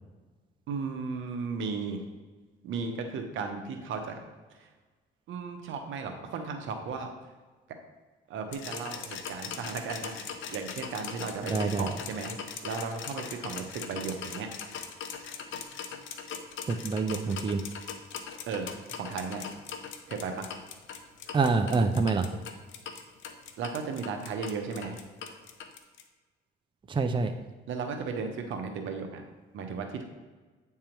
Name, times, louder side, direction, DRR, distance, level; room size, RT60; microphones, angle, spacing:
voice 1, 0.7-2.0 2.6-4.2 4.6-4.7 5.3-7.1 8.3-12.3 12.6-14.5 18.5-19.4 20.1-20.5 23.6-25.0 27.7-29.2 29.5-30.0, right 5 dB, 80° right, 5 dB, 1.0 m, -35 dB
sound 1, 8.5-26.0, left 7 dB, 75° left, 0.7 m, -40 dB
voice 2, 11.5-11.9 16.7-17.6 21.3-22.3 26.9-27.3, right 4 dB, 25° right, 6 dB, 0.5 m, -26 dB
8.7 x 3.6 x 4.5 m, 1.3 s
cardioid pair, 90°, 20 cm